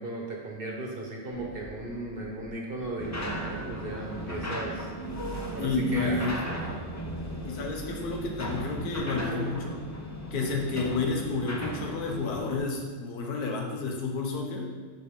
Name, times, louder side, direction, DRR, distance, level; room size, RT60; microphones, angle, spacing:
voice 1, 0.0-4.9 5.5-6.8 10.3-10.6, right 2 dB, 40° right, -1 dB, 1.2 m, -36 dB
sound 1, 1.3-9.0, equal, 60° left, 2.6 m, -46 dB
sound 2, 3.0-12.6, equal, 20° left, 0.5 m, -36 dB
voice 2, 5.6-6.3 7.4-9.8 10.3-14.7, left 3 dB, 85° left, 1 dB, 1.5 m, -30 dB
9.0 x 4.3 x 3.7 m, 1.5 s
omnidirectional pair, 1.6 m